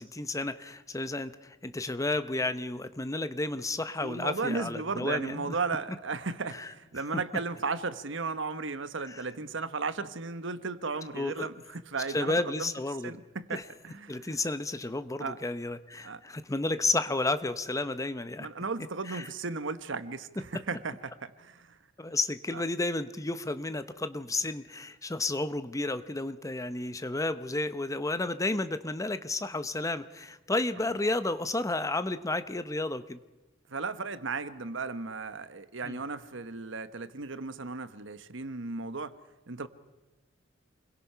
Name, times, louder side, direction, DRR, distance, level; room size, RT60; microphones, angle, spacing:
voice 1, 0.0-5.5 6.5-6.7 9.1-9.2 11.1-11.5 12.1-13.2 13.5-13.6 14.1-18.5 19.1-19.3 22.0-33.2 35.8-36.0, left 2 dB, 15° left, 12 dB, 0.8 m, -32 dB
voice 2, 4.0-12.7 13.0-14.4 15.2-15.4 16.0-16.2 18.4-21.8 22.5-22.6 30.8-30.9 33.7-39.2 39.5-39.7, right 4 dB, 70° right, 12 dB, 1.1 m, -35 dB
28.5 x 22.0 x 5.7 m, 1.1 s
head